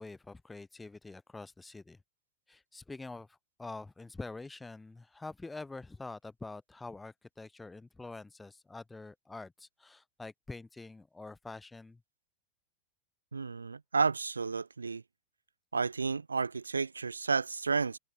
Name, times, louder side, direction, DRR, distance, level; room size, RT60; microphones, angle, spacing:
voice 1, 0.0-2.0 2.5-12.0, left 3 dB, 10° left, 0.7 m, -46 dB
voice 2, 13.3-15.0 15.7-18.0, right 4 dB, 75° right, 0.4 m, -31 dB
figure-of-eight pair, 90°, 0 cm